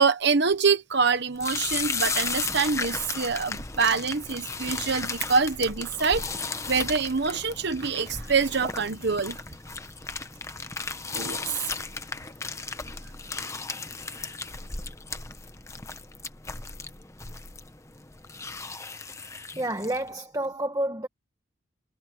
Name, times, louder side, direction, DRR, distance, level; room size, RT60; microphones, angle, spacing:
voice 1, 0.0-6.2 6.7-9.4 11.1-11.4, right 5 dB, 55° right, 1.1 m, -25 dB
sound 1, 1.4-20.1, left 4 dB, 15° left, 1.0 m, -35 dB
voice 2, 19.5-21.1, right 1 dB, 15° right, 1.6 m, -29 dB
head